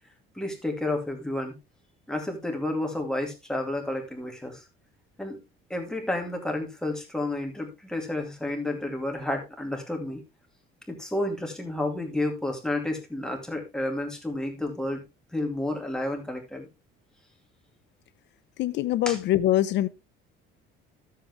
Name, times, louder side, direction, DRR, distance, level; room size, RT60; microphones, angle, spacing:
voice 1, 0.4-1.5 2.1-4.6 5.2-5.4 5.7-10.2 10.9-15.0 15.3-16.7 19.1-19.2, left 1 dB, 5° left, 2.3 m, -31 dB
voice 2, 18.6-19.9, left 13 dB, 55° left, 0.7 m, -23 dB
13.5 x 7.7 x 3.1 m
cardioid pair, 170°, 21 cm